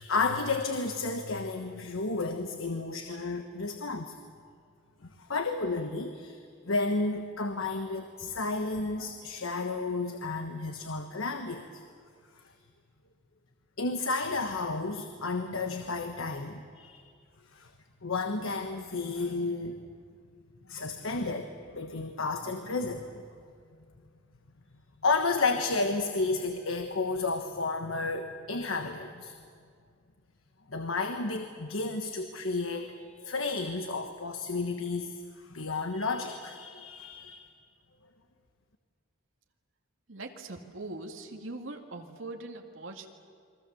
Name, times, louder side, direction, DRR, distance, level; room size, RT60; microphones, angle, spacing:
voice 1, 0.0-4.1 5.2-6.4 6.6-11.8 13.8-17.0 17.5-17.7 18.0-19.8 20.7-23.2 25.0-29.3 30.7-37.5, left 3 dB, 85° left, 6 dB, 1.3 m, -32 dB
voice 2, 40.1-43.1, right 2 dB, 70° right, 2 dB, 2.1 m, -41 dB
29.5 x 22.5 x 7.1 m, 2.2 s
head